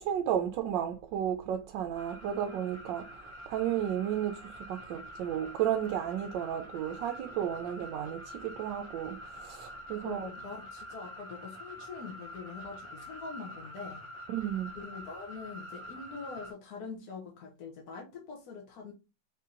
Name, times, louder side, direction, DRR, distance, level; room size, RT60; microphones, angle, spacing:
voice 1, 0.0-3.1 3.5-10.3 14.3-14.7, right 10 dB, 80° right, 1.2 m, -33 dB
sound 1, 2.0-16.5, equal, 20° right, 1.1 m, -46 dB
voice 2, 10.0-14.0 14.7-18.9, left 5 dB, 60° left, 1.3 m, -44 dB
4.1 x 2.8 x 3.7 m
omnidirectional pair, 2.0 m